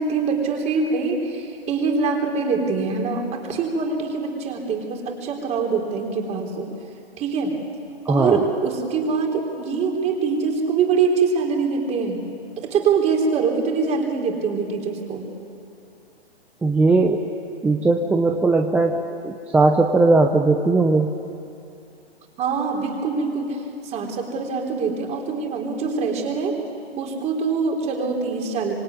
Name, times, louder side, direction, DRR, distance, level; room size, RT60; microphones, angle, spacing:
voice 1, 0.0-6.7 7.2-7.6 8.1-12.2 12.6-15.2 22.4-23.6 23.8-26.5 27.0-28.7, right 5 dB, 20° right, 1 dB, 3.8 m, -24 dB
voice 2, 8.1-8.4 16.6-17.2 17.6-21.1, right 3 dB, 5° right, 3 dB, 0.6 m, -18 dB
25.5 x 24.0 x 9.6 m, 2.6 s
hypercardioid pair, 145°, 31 cm